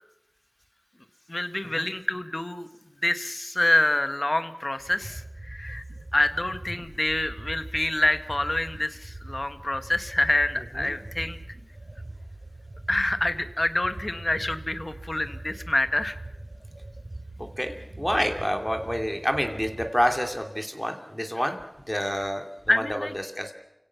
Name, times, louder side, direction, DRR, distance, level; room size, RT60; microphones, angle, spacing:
voice 1, 1.3-2.7 3.0-5.8 6.1-11.4 12.9-16.2 22.7-23.1, left 1 dB, 50° left, 10 dB, 1.5 m, -26 dB
sound 1, 4.8-20.4, right 2 dB, 70° right, 2.9 m, -42 dB
voice 2, 17.4-23.5, equal, 10° left, 5 dB, 2.7 m, -28 dB
29.0 x 16.5 x 5.9 m, 0.91 s
wide cardioid pair, 40°, 0 cm